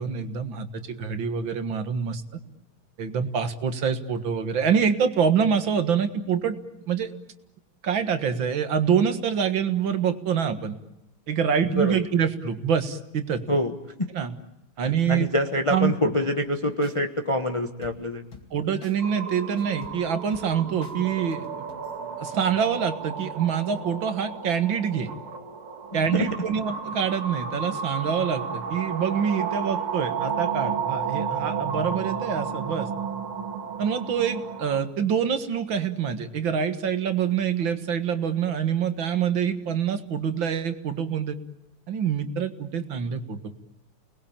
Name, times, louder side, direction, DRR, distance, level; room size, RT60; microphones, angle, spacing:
voice 1, 0.0-2.2 3.0-6.6 6.9-7.1 7.8-10.8 11.3-13.4 14.1-14.4 14.8-15.3 15.7-15.9 18.5-21.5 22.2-25.1 25.9-32.9 33.8-41.4 41.9-43.6, right 7 dB, 65° right, 9 dB, 2.3 m, -26 dB
voice 2, 13.5-14.1 14.8-18.2 26.1-26.3, equal, 20° left, 5 dB, 1.1 m, -26 dB
sound 1, 16.8-17.0 17.8-18.6 18.8-19.0 19.3-21.0 21.3-22.0, left 5 dB, 70° left, 3.5 m, -47 dB
sound 2, 19.0-34.8, right 6 dB, 85° right, 3.0 m, -32 dB
29.5 x 20.5 x 8.8 m, 0.90 s
omnidirectional pair, 2.3 m